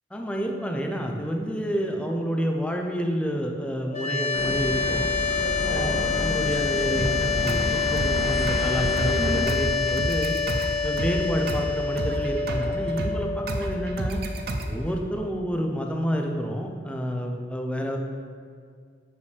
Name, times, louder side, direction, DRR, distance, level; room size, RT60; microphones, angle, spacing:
voice 1, 0.1-5.1 5.7-10.4 10.8-14.2 14.7-18.0, equal, 5° left, 2 dB, 0.5 m, -29 dB
sound 1, 3.9-15.0, left 6 dB, 40° left, 0.9 m, -27 dB
sound 2, 4.3-9.4, right 1 dB, 85° right, 1.2 m, -30 dB
sound 3, 7.0-15.0, right 1 dB, 55° right, 0.5 m, -31 dB
6.7 x 5.2 x 3.3 m, 2.1 s
head